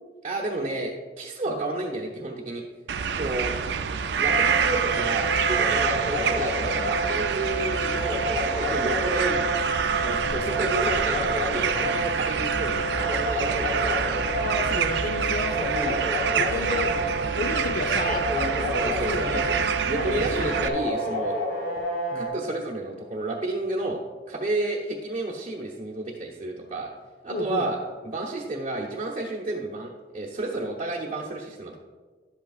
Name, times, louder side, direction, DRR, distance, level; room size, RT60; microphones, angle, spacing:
voice 1, 0.2-2.6 3.1-3.5 4.2-9.4 10.0-14.3 18.8-19.6 19.8-21.3 22.1-24.0 24.3-26.9 27.2-27.8 28.0-31.8, right 2 dB, 35° right, -3 dB, 0.9 m, -31 dB
sound 1, 2.9-20.7, right 6 dB, 70° right, 0.5 m, -27 dB
sound 2, 4.3-22.3, equal, 75° left, 1.7 m, -29 dB
voice 2, 14.4-16.0 16.4-17.1 17.3-19.4 19.9-21.2 22.1-22.3 27.3-27.7, left 2 dB, 55° left, 6 dB, 0.8 m, -33 dB
11.0 x 8.2 x 2.4 m, 1.5 s
head